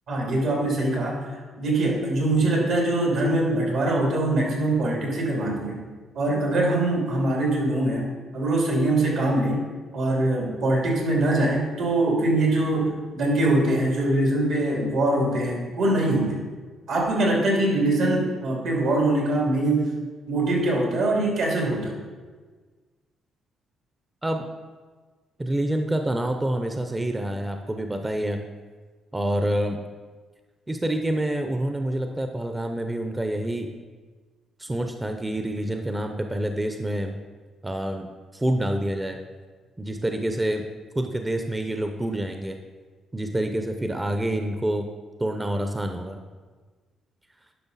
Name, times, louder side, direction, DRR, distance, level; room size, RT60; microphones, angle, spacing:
voice 1, 0.1-5.8 6.1-8.0 8.3-9.6 9.9-16.4 16.9-19.9 20.3-21.9, right 1 dB, 75° right, -2 dB, 2.8 m, -23 dB
voice 2, 25.4-28.5 29.1-29.8 30.7-33.7 34.6-37.1 37.6-38.1 38.3-39.2 39.8-40.7 40.9-42.6 43.1-44.9 45.2-46.2, right 1 dB, 15° right, 5 dB, 0.6 m, -27 dB
11.0 x 5.5 x 4.1 m, 1.4 s
cardioid pair, 90°, 0 cm